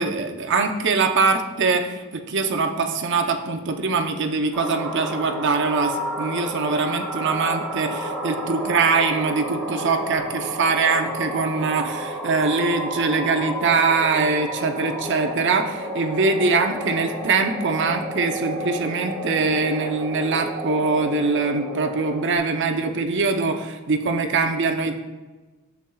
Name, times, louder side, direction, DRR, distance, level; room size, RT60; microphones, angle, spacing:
voice 1, 0.0-25.0, right 4 dB, 60° right, 5 dB, 0.7 m, -23 dB
sound 1, 4.5-22.4, right 1 dB, 5° right, 2.2 m, -31 dB
10.5 x 7.2 x 2.3 m, 1.2 s
head